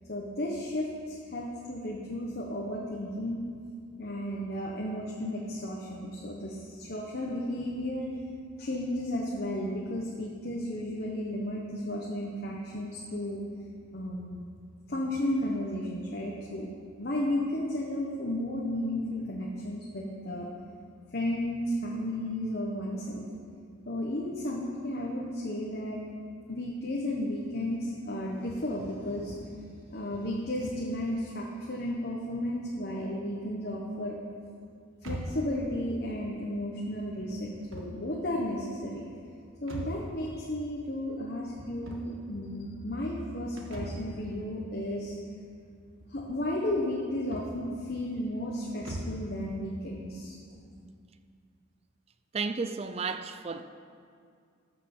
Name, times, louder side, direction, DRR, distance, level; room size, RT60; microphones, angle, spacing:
voice 1, 0.1-3.5 4.0-8.0 8.6-13.4 13.9-14.4 14.9-16.7 17.0-20.5 21.1-23.2 23.9-26.0 26.5-29.5 29.9-34.2 35.0-39.0 39.6-45.1 46.1-50.3, left 1 dB, 50° left, 1.1 m, -33 dB
sound 1, 35.0-49.3, right 1 dB, 85° right, 1.6 m, -44 dB
voice 2, 52.3-53.6, right 4 dB, 30° right, 0.4 m, -32 dB
14.0 x 6.0 x 6.1 m
head